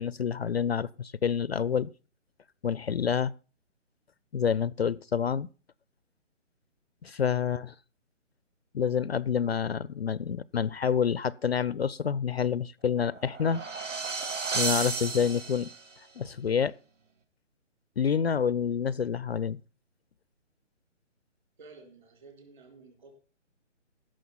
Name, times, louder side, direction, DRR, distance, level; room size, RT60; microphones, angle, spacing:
voice 1, 0.0-1.9 2.6-3.3 4.3-5.5 7.0-7.7 8.7-13.6 14.5-15.7 16.2-16.7 18.0-19.6, left 7 dB, 55° left, 0.5 m, -28 dB
sound 1, 13.0-16.0, right 4 dB, 80° right, 2.2 m, -33 dB
voice 2, 21.6-23.2, right 3 dB, 40° right, 4.2 m, -53 dB
15.5 x 6.5 x 5.6 m
hypercardioid pair, 175°, 37 cm